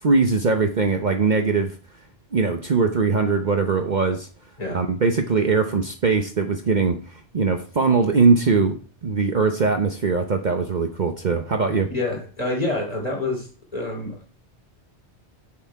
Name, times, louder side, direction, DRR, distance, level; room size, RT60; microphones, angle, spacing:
voice 1, 0.0-1.7 2.3-4.3 4.7-7.0 7.3-11.9, right 4 dB, 45° right, 0.9 m, -21 dB
voice 2, 11.9-14.3, left 2 dB, 35° left, 2.9 m, -27 dB
7.9 x 7.2 x 4.7 m
omnidirectional pair, 1.2 m